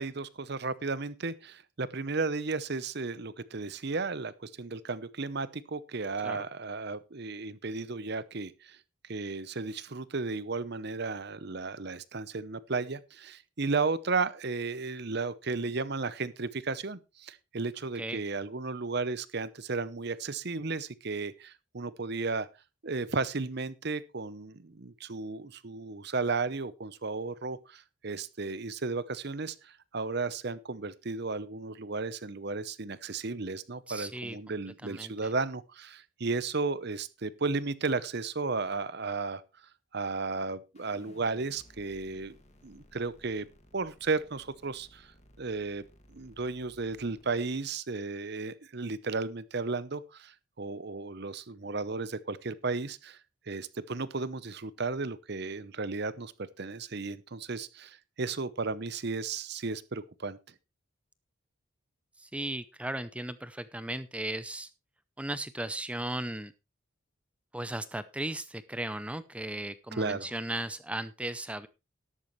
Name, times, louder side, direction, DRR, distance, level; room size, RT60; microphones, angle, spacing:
voice 1, 0.0-8.8 9.1-22.5 22.8-39.4 39.9-42.3 42.6-43.5 43.7-45.1 45.4-45.8 46.1-53.2 53.5-56.3 56.6-60.4 69.9-70.3, right 4 dB, 50° right, 0.8 m, -34 dB
voice 2, 33.9-34.4 34.8-35.3 62.2-64.7 65.2-66.5 67.5-71.7, right 1 dB, 5° right, 0.5 m, -36 dB
sound 1, 40.7-47.5, equal, 30° left, 2.0 m, -58 dB
13.0 x 11.5 x 3.2 m
head